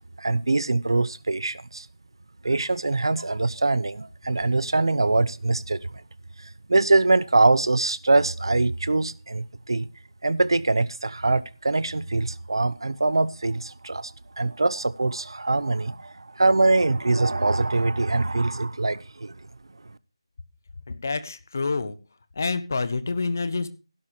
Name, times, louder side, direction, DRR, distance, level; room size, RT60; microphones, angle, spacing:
voice 1, 0.2-1.9 2.4-5.9 6.4-9.9 10.2-19.5, right 2 dB, 60° right, 0.9 m, -23 dB
voice 2, 20.9-22.0 22.4-23.7, left 4 dB, 35° left, 1.1 m, -27 dB
16.0 x 11.5 x 3.1 m
figure-of-eight pair, 175°, 3 cm